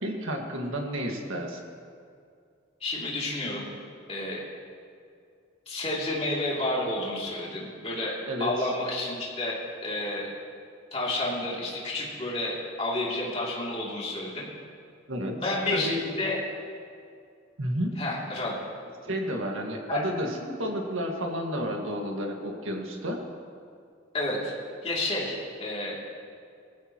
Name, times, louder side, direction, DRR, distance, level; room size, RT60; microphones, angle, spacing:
voice 1, 0.0-1.6 8.3-8.5 15.1-16.0 17.6-18.0 19.0-23.2, equal, 85° right, 1 dB, 1.9 m, -31 dB
voice 2, 2.8-3.7 4.1-4.4 5.7-10.3 10.9-14.5 15.4-16.4 18.0-18.5 19.9-20.0 24.1-24.5 24.8-25.9, left 2 dB, 30° left, -5 dB, 2.9 m, -30 dB
19.5 x 15.0 x 3.1 m, 2.3 s
head